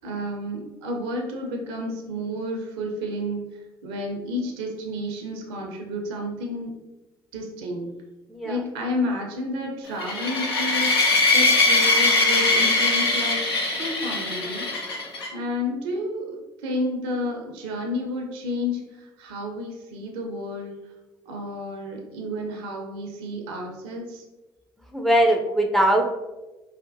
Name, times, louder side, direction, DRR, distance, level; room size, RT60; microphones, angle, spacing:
voice 1, 0.0-3.4 3.8-6.7 7.3-7.9 8.4-11.0 11.3-14.7 15.3-16.4 16.6-20.8 21.3-24.2, left 1 dB, 70° right, 2 dB, 0.6 m, -31 dB
sound 1, 10.0-15.3, left 3 dB, 85° left, 0.5 m, -21 dB
voice 2, 24.9-26.1, right 1 dB, ahead, 3 dB, 0.5 m, -20 dB
4.1 x 2.1 x 2.6 m, 1.1 s
hypercardioid pair, 55°, 13 cm